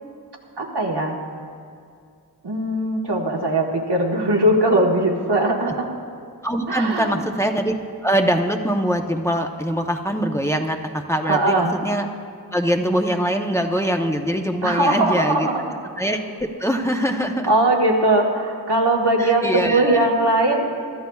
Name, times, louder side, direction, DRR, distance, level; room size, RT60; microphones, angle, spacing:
voice 1, 0.6-1.1 2.4-5.9 6.7-7.2 11.3-11.8 14.6-15.6 17.4-20.7, right 1 dB, 90° right, -1 dB, 1.5 m, -20 dB
voice 2, 6.4-12.1 12.5-15.5 16.0-16.2 16.6-17.5 19.2-20.1, equal, 5° left, 3 dB, 0.8 m, -23 dB
23.5 x 13.0 x 2.4 m, 2.3 s
wide cardioid pair, 60°, 39 cm